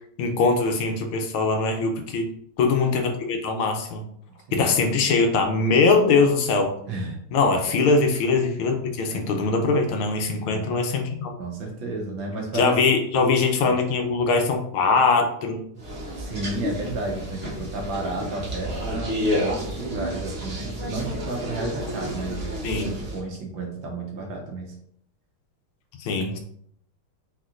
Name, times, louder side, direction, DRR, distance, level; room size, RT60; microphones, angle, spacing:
voice 1, 0.2-2.3 2.6-4.1 4.5-6.7 7.3-11.3 12.5-15.6 22.6-22.9 26.0-26.4, left 4 dB, 75° left, 4 dB, 1.5 m, -22 dB
voice 2, 4.5-4.8 6.9-7.2 9.0-9.4 10.3-10.8 11.4-12.8 13.6-13.8 15.7-15.8 16.2-22.5 22.9-24.8, right 2 dB, 65° right, 0 dB, 1.6 m, -32 dB
sound 1, 15.8-23.2, equal, 40° right, 1.2 m, -30 dB
4.5 x 4.3 x 2.5 m, 0.69 s
omnidirectional pair, 2.4 m